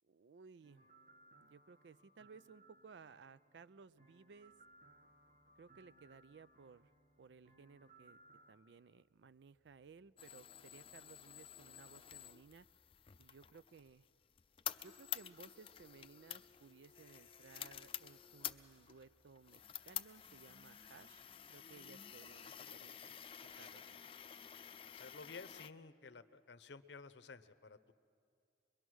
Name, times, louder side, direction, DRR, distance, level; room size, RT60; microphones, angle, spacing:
voice 1, 0.0-0.9 1.4-4.5 5.6-6.9 7.2-8.2 8.5-12.7 13.2-14.0 14.8-24.1, right 5 dB, 70° right, 17 dB, 0.4 m, -60 dB
sound 1, 0.6-8.5, right 2 dB, 45° right, 1.3 m, -66 dB
sound 2, 4.2-22.6, equal, 90° right, 5.8 m, -82 dB
sound 3, 10.2-25.7, left 10 dB, 30° left, 0.5 m, -50 dB
voice 2, 24.9-27.9, left 4 dB, 75° left, 11 dB, 0.7 m, -54 dB
24.5 x 22.0 x 6.3 m, 2.6 s
head